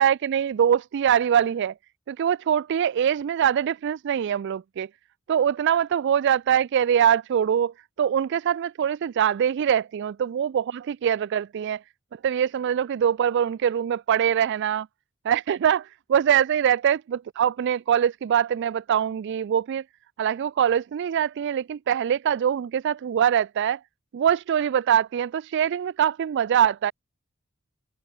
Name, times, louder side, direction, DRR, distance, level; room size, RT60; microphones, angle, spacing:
voice 1, 0.0-1.7 2.1-4.9 5.3-11.8 12.1-14.9 15.2-19.8 20.2-23.8 24.1-26.9, right 9 dB, 55° right, 0.3 m, -23 dB
head